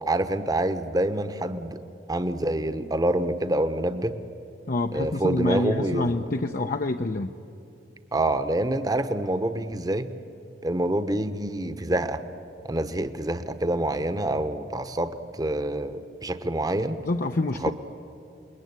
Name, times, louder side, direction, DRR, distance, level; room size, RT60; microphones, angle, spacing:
voice 1, 0.0-1.8 2.1-4.2 4.9-6.2 8.1-10.1 10.6-12.2 12.6-17.0 17.6-17.7, right 1 dB, 20° right, 10 dB, 1.1 m, -26 dB
voice 2, 4.7-7.3 17.0-17.7, left 2 dB, 50° left, 5 dB, 0.8 m, -27 dB
28.5 x 21.5 x 9.6 m, 2.7 s
head